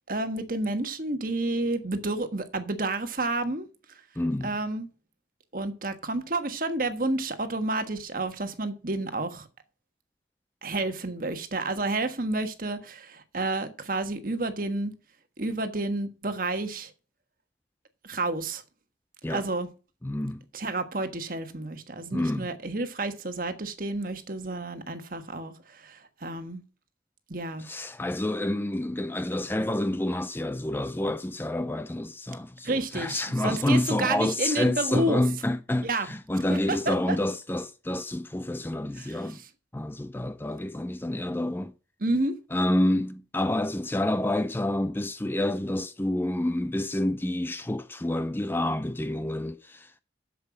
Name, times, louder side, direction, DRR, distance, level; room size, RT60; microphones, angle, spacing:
voice 1, 0.1-3.7 4.4-4.9 5.5-9.5 10.6-14.9 15.4-16.9 18.0-18.6 19.3-19.7 20.5-26.6 27.3-27.7 32.6-35.2 35.8-36.1 36.5-37.2 38.9-39.5 42.0-42.3, right 2 dB, 50° right, 1.5 m, -30 dB
voice 2, 4.2-4.6 19.2-19.4 20.0-20.4 22.1-22.5 27.6-39.4 39.7-41.7 42.5-50.0, left 1 dB, 10° left, 0.4 m, -28 dB
7.9 x 7.5 x 6.2 m
head